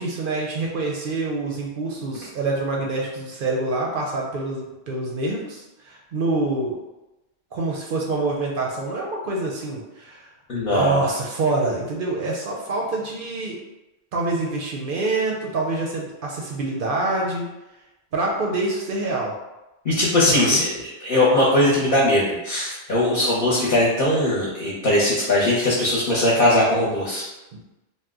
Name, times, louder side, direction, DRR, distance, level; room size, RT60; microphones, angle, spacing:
voice 1, 0.0-6.8 7.5-10.3 10.6-13.6 14.1-17.5 18.1-19.4 20.3-20.6 27.5-27.6, right 2 dB, 60° right, -2 dB, 0.6 m, -26 dB
voice 2, 10.5-11.0 19.8-27.2, left 1 dB, 50° left, -6 dB, 0.8 m, -20 dB
2.7 x 2.1 x 3.5 m, 1.0 s
omnidirectional pair, 1.2 m